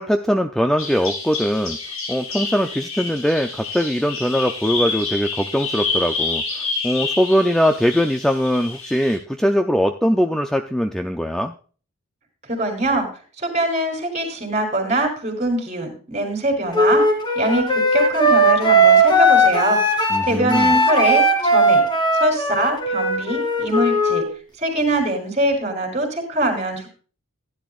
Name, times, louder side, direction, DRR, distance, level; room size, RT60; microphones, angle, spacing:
voice 1, 0.0-1.8 2.1-11.5 20.1-20.8, equal, ahead, 5 dB, 0.4 m, -21 dB
Bird vocalization bird call bird song, 0.8-9.2, left 4 dB, 65° left, 5.5 m, -28 dB
voice 2, 12.4-13.1 13.4-17.0 17.4-21.8 22.1-24.2 24.6-26.9, right 1 dB, 30° right, 3 dB, 3.7 m, -23 dB
Wind instrument woodwind instrument, 16.7-24.3, right 1 dB, 20° left, 2.6 m, -17 dB
15.5 x 10.5 x 2.4 m, 0.39 s
head